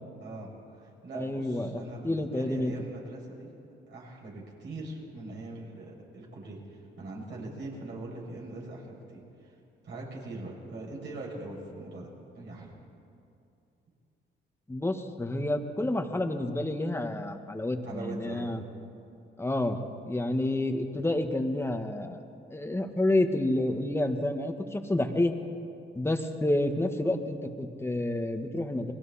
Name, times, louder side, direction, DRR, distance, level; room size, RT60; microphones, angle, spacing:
voice 1, 0.2-3.5 3.9-9.6 9.8-12.8 17.8-18.5, right 2 dB, 65° right, -3 dB, 7.0 m, -42 dB
voice 2, 1.1-2.7 14.7-18.6 19.4-22.2 22.5-25.3 25.9-28.9, left 1 dB, 10° left, 6 dB, 1.7 m, -29 dB
30.0 x 21.5 x 4.3 m, 2.6 s
cardioid pair, 90°, 20 cm